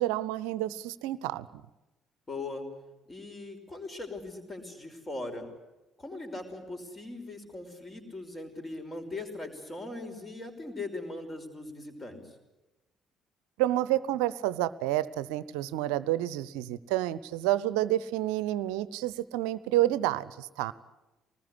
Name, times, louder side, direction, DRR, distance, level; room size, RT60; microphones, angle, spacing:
voice 1, 0.0-1.5 13.6-20.7, right 14 dB, 65° right, 18 dB, 0.8 m, -29 dB
voice 2, 2.3-2.7 3.1-5.5 6.0-12.3, left 2 dB, 25° left, 6 dB, 5.7 m, -40 dB
24.5 x 20.0 x 9.9 m, 1.1 s
figure-of-eight pair, 50°, 0 cm